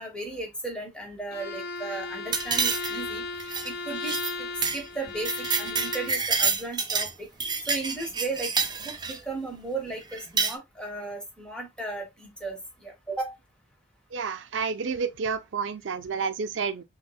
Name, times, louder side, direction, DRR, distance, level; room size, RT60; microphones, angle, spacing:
voice 1, 0.0-3.2 3.6-4.5 4.7-7.3 7.7-8.5 8.8-13.4, right 3 dB, 5° left, 1.3 m, -35 dB
Bowed string instrument, 1.3-6.2, left 4 dB, 55° left, 0.6 m, -36 dB
sound 1, 2.3-3.1 3.4-3.7 4.0-4.3 4.6-4.8 5.1-7.1 7.4-9.2 10.1-10.5, right 5 dB, 25° right, 0.5 m, -28 dB
voice 2, 14.1-16.8, right 5 dB, 90° right, 0.5 m, -30 dB
6.2 x 2.2 x 2.3 m
head